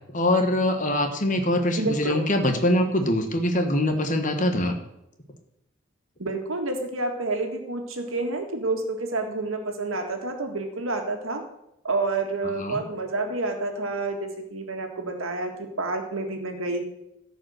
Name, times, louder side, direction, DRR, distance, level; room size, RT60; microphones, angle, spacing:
voice 1, 0.1-4.8 12.6-12.8, left 1 dB, 40° left, 6 dB, 1.3 m, -23 dB
voice 2, 1.8-2.2 6.2-11.4 11.8-16.8, right 2 dB, 90° right, 4 dB, 1.8 m, -29 dB
14.5 x 5.3 x 6.4 m, 0.82 s
head